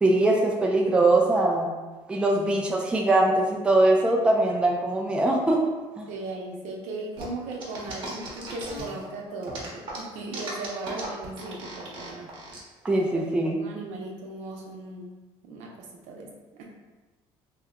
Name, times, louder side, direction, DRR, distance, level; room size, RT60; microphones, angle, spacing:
voice 1, 0.0-1.7 2.1-5.6 6.0-6.1 12.8-13.5, right 2 dB, 10° right, 0 dB, 0.3 m, -22 dB
voice 2, 2.3-2.9 6.1-12.3 12.9-16.9, right 2 dB, 75° right, -1 dB, 0.7 m, -38 dB
sound 1, 7.2-9.0 9.4-12.6, right 2 dB, 45° right, 0.9 m, -38 dB
2.8 x 2.1 x 3.6 m, 1.2 s
cardioid pair, 130°, 12 cm